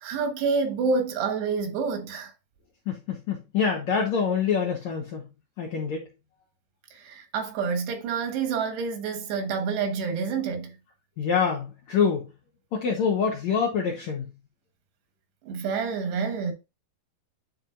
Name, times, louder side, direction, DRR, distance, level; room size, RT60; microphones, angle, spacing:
voice 1, 0.0-2.3 6.9-10.8 15.5-16.5, right 5 dB, 80° right, 3.5 m, -28 dB
voice 2, 2.9-5.2 5.6-6.0 11.2-12.3 12.7-14.3, left 6 dB, 75° left, 1.6 m, -26 dB
10.5 x 4.3 x 2.5 m
omnidirectional pair, 4.7 m